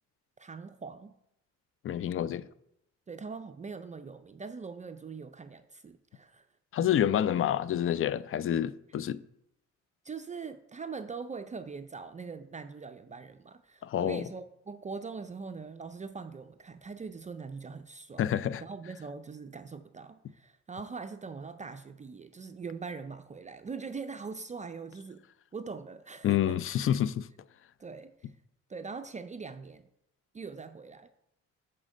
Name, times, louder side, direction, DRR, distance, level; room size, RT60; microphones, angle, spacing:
voice 1, 0.4-1.1 3.1-6.5 10.0-18.3 18.6-25.2 25.5-26.6 27.8-28.1 28.7-29.9 30.3-31.1, right 5 dB, 25° right, 0.4 m, -42 dB
voice 2, 1.8-2.5 6.7-9.2 13.8-14.2 18.2-18.6 26.2-27.3, left 10 dB, 45° left, 0.4 m, -28 dB
7.4 x 4.4 x 5.0 m
cardioid pair, 90°, 30 cm